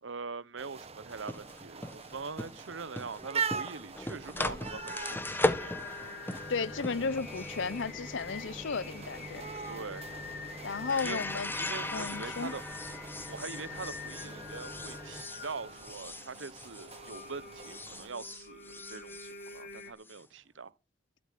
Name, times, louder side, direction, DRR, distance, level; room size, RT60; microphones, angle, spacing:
voice 1, 0.0-6.1 9.7-10.1 11.0-11.3 11.5-12.6 13.3-20.7, right 4 dB, 75° right, 0.9 m, -43 dB
sound 1, 0.6-18.1, right 6 dB, 35° right, 1.2 m, -44 dB
sound 2, 1.1-17.3 17.6-20.2, left 1 dB, 10° left, 1.3 m, -39 dB
Singing, 4.0-19.9, left 5 dB, 55° left, 7.5 m, -47 dB
voice 2, 6.5-9.4 10.6-11.5 11.9-12.5, left 4 dB, 70° left, 0.7 m, -34 dB
12.0 x 12.0 x 8.3 m
head